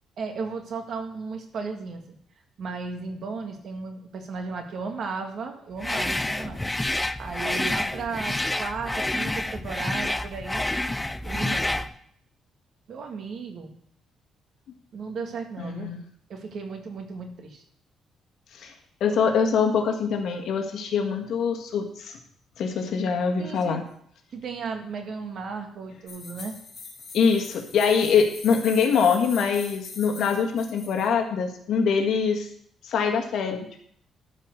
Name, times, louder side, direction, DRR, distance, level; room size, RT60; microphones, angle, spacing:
voice 1, 0.2-2.2 2.6-6.7 7.2-10.7 11.2-11.8 12.9-13.7 14.9-15.9 16.3-17.6 23.4-23.8 24.3-26.6, right 4 dB, 55° right, 4 dB, 1.7 m, -35 dB
sound 1, 5.8-11.9, left 1 dB, 10° left, 0.4 m, -28 dB
voice 2, 15.6-16.0 18.5-18.7 19.0-22.2 22.6-23.8 27.1-32.5 32.8-33.8, left 6 dB, 70° left, 3 dB, 1.7 m, -24 dB
sound 2, 26.1-31.1, left 4 dB, 40° left, 4.1 m, -42 dB
13.0 x 4.7 x 6.6 m, 0.65 s
cardioid pair, 145°, 0 cm